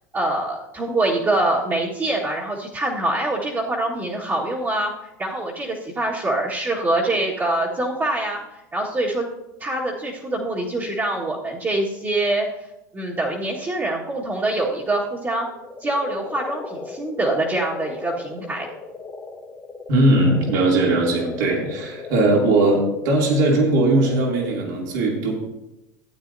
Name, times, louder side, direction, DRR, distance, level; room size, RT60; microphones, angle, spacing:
voice 1, 0.1-4.9 5.2-8.4 8.7-9.3 9.6-12.5 12.9-15.5 15.8-18.7, right 2 dB, 25° right, -6 dB, 1.7 m, -24 dB
sound 1, 14.5-24.6, left 3 dB, 15° left, 1.3 m, -37 dB
voice 2, 19.9-25.3, right 2 dB, 75° right, -1 dB, 2.9 m, -19 dB
14.0 x 8.8 x 2.7 m, 0.94 s
hypercardioid pair, 100°, 10 cm